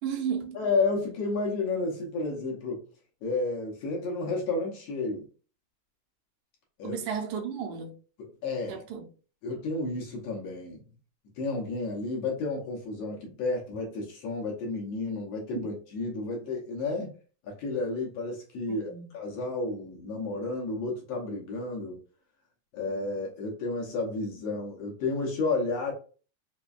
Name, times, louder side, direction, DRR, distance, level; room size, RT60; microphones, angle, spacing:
voice 1, 0.0-0.6 6.8-7.9 8.7-9.1 15.5-15.6 18.7-19.1, right 7 dB, 80° right, 2.0 m, -33 dB
voice 2, 0.5-2.8 3.2-5.3 6.8-7.0 8.2-8.8 9.4-10.8 11.4-17.1 17.4-22.0 22.7-25.9, left 3 dB, 70° left, 1.6 m, -31 dB
5.0 x 2.2 x 2.3 m
omnidirectional pair, 3.5 m